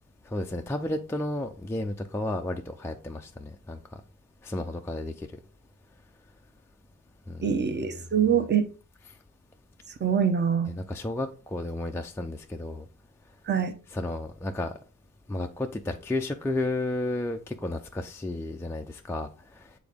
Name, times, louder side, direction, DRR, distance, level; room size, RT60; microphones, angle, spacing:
voice 1, 0.2-4.0 4.4-5.3 7.3-8.2 10.6-12.9 13.9-14.7 15.3-19.7, left 2 dB, 5° left, 0.4 m, -33 dB
voice 2, 7.4-8.6 10.0-10.7 13.5-13.7, right 7 dB, 30° right, 0.8 m, -24 dB
7.0 x 3.8 x 3.5 m
cardioid pair, 110°, 35 cm